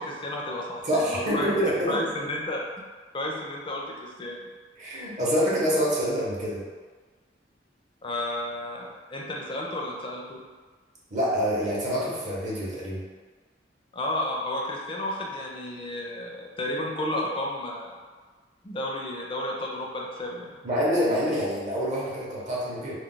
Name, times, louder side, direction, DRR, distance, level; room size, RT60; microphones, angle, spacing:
voice 1, 0.0-1.5 1.9-2.6 3.1-4.5 8.0-10.4 13.9-17.9 18.6-20.5, left 1 dB, 30° left, -2 dB, 0.4 m, -32 dB
voice 2, 0.8-2.0 4.8-6.7 11.1-13.0 20.6-22.9, equal, 40° right, -6 dB, 0.7 m, -26 dB
2.3 x 2.0 x 3.7 m, 1.4 s
head